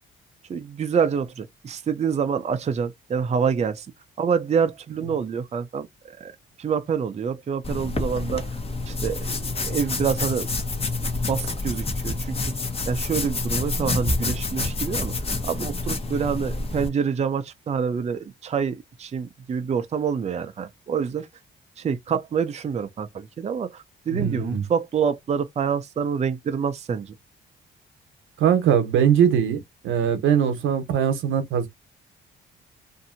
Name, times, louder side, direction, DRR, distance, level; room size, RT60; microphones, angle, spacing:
voice 1, 0.5-3.9 4.2-6.3 6.6-8.6 8.9-10.5 11.3-12.5 12.9-15.1 15.4-21.3 21.8-27.1, right 6 dB, 35° right, 0.5 m, -27 dB
sound 1, 7.6-16.9, left 2 dB, 30° left, 0.9 m, -28 dB
voice 2, 24.1-24.7 28.4-31.7, right 8 dB, 80° right, 0.9 m, -21 dB
2.7 x 2.6 x 2.5 m
cardioid pair, 90°, 20 cm